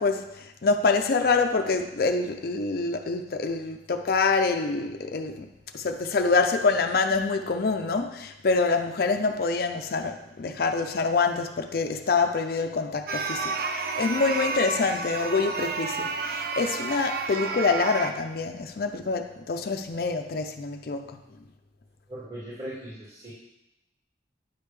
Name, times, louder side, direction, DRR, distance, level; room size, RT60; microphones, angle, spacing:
voice 1, 0.0-5.5 5.7-13.5 14.0-21.2, left 4 dB, 55° left, 5 dB, 0.4 m, -26 dB
sound 1, 13.1-18.1, right 4 dB, 55° right, 0.5 m, -31 dB
voice 2, 22.1-23.3, right 1 dB, 30° right, -12 dB, 2.1 m, -39 dB
9.4 x 3.5 x 3.3 m, 0.90 s
head